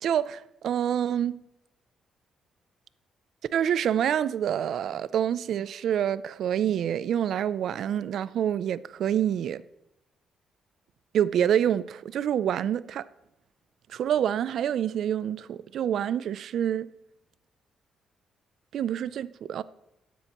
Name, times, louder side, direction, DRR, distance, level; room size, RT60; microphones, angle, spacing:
voice 1, 0.0-1.4 3.5-9.6 11.1-13.0 13.9-16.9 18.7-19.6, right 9 dB, 70° right, 0.4 m, -27 dB
14.0 x 10.0 x 3.0 m
cardioid pair, 90°, 0 cm